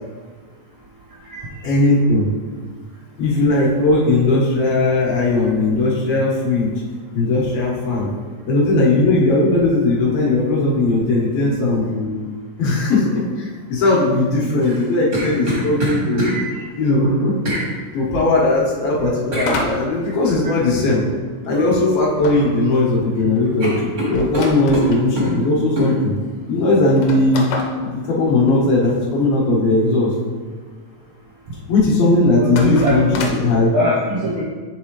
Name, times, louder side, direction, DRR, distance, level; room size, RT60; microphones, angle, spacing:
voice 1, 1.6-2.3 3.2-6.7 7.1-8.1 8.5-12.2 12.6-16.4 16.8-17.4 17.9-21.0 21.4-26.1 26.5-27.4 27.8-30.1 31.7-33.7, left 2 dB, 90° left, -6 dB, 3.3 m, -18 dB
sound 1, 14.6-16.4 17.4-17.7 19.3-19.5 21.5-21.8 22.2-22.8 23.1-23.3 23.6-25.3 25.8-25.9, left 1 dB, 55° right, 0.8 m, -24 dB
voice 2, 16.2-16.7 20.4-20.5 32.5-33.0 33.7-34.4, equal, 70° right, -5 dB, 1.6 m, -22 dB
sound 2, 19.4-20.9 22.2-25.1 25.8-25.9 26.1-26.2 26.8-29.0 32.4-33.6, left 3 dB, 75° left, 2.1 m, -29 dB
10.0 x 3.7 x 3.1 m, 1.4 s
omnidirectional pair, 4.0 m